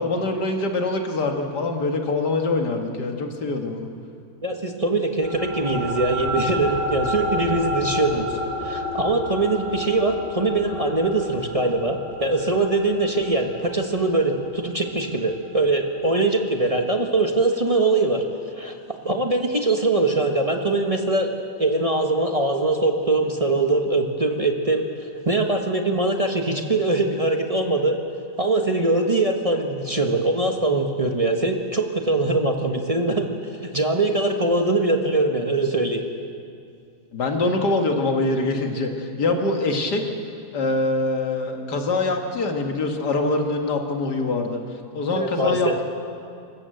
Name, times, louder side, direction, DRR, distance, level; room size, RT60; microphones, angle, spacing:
voice 1, 0.0-3.9 37.1-40.0 40.5-44.6 44.9-45.8, left 2 dB, 90° left, 4 dB, 2.4 m, -24 dB
voice 2, 4.4-8.3 8.6-18.2 18.6-18.7 19.0-21.3 21.6-28.0 28.4-36.0 45.1-45.8, right 2 dB, 25° right, 3 dB, 1.4 m, -22 dB
sound 1, 5.2-16.0, left 1 dB, 50° left, 2.0 m, -31 dB
26.0 x 14.5 x 7.8 m, 2.4 s
omnidirectional pair, 1.7 m